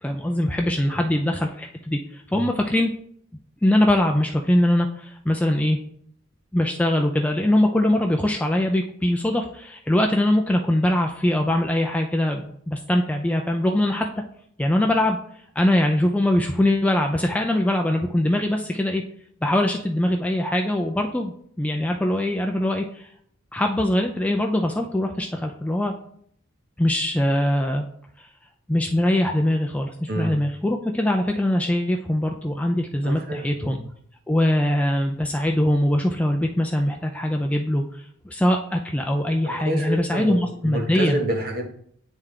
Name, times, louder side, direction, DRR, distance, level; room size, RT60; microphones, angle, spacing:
voice 1, 0.0-2.9 3.6-5.8 6.5-14.1 14.6-15.2 15.6-19.0 19.4-23.1 23.5-25.9 26.8-27.9 28.7-33.8 34.3-41.2, left 1 dB, 5° left, 2 dB, 0.4 m, -22 dB
voice 2, 30.1-30.4 33.0-33.8 39.4-41.7, right 1 dB, 45° right, 3 dB, 1.1 m, -29 dB
9.1 x 3.6 x 3.3 m, 0.65 s
head